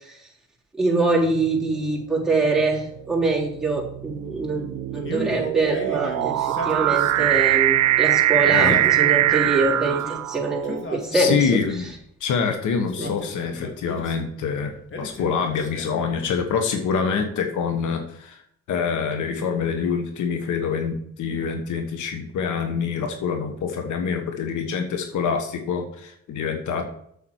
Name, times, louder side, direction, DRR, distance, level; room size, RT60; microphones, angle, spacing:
voice 1, 0.8-11.4 13.0-13.1, right 3 dB, ahead, -5 dB, 3.6 m, -24 dB
sound 1, 1.3-1.7 2.5-10.8, right 14 dB, 70° right, 0.5 m, -22 dB
Male speech man speaking, 4.9-7.5 8.5-10.2 10.6-11.9 12.8-14.3 14.9-16.4, left 2 dB, 40° left, 2.1 m, -36 dB
voice 2, 8.4-8.8 11.1-11.9 12.2-18.4 18.7-26.9, left 6 dB, 80° left, 5 dB, 1.4 m, -26 dB
8.5 x 7.3 x 4.7 m, 0.69 s
cardioid pair, 90°, 30 cm